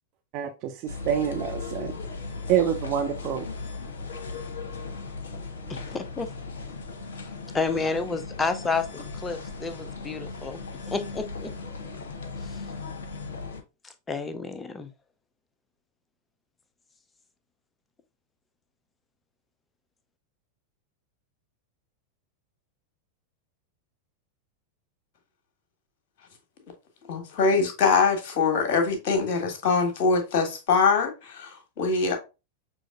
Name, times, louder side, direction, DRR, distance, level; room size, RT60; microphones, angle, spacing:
voice 1, 0.3-1.9 2.5-3.5, right 9 dB, 40° right, 0.6 m, -27 dB
sound 1, 0.9-13.6, left 4 dB, 65° left, 0.9 m, -37 dB
voice 2, 5.7-6.3 7.5-10.6 10.9-11.5 12.4-12.7 13.8-14.9, left 4 dB, 15° left, 0.6 m, -30 dB
voice 3, 27.1-32.2, left 4 dB, 45° left, 1.5 m, -23 dB
6.2 x 3.1 x 2.3 m
figure-of-eight pair, 90°, 0 cm